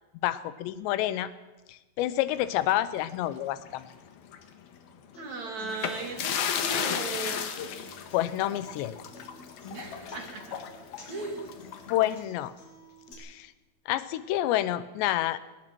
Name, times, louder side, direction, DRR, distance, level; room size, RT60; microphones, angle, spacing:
voice 1, 0.2-1.3 1.7-3.9 8.1-9.0 11.9-12.5 13.2-13.5 13.9-15.4, left 14 dB, 85° left, 14 dB, 3.1 m, -28 dB
sound 1, 2.4-3.9 4.3-4.4 5.7-12.2, left 8 dB, 70° left, 3.1 m, -35 dB
Human voice / Acoustic guitar, 5.1-13.1, left 2 dB, 40° left, 4.3 m, -51 dB
voice 2, 5.2-7.5 9.7-10.6 11.1-11.5, right 3 dB, 45° right, 3 dB, 3.5 m, -37 dB
22.0 x 20.0 x 6.2 m, 1.1 s
omnidirectional pair, 4.9 m